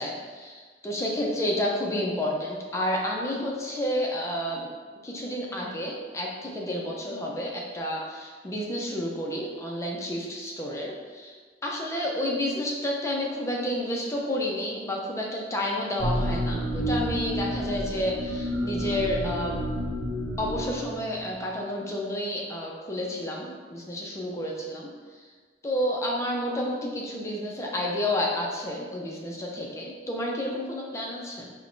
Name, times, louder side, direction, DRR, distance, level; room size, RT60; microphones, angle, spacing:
voice 1, 0.0-4.7 5.0-11.3 11.6-19.6 20.4-24.9 25.2-25.3 25.6-31.5, left 1 dB, 15° left, -2 dB, 0.4 m, -30 dB
sound 1, 16.0-21.3, equal, 85° right, 0.5 m, -30 dB
4.4 x 2.1 x 2.6 m, 1.5 s
head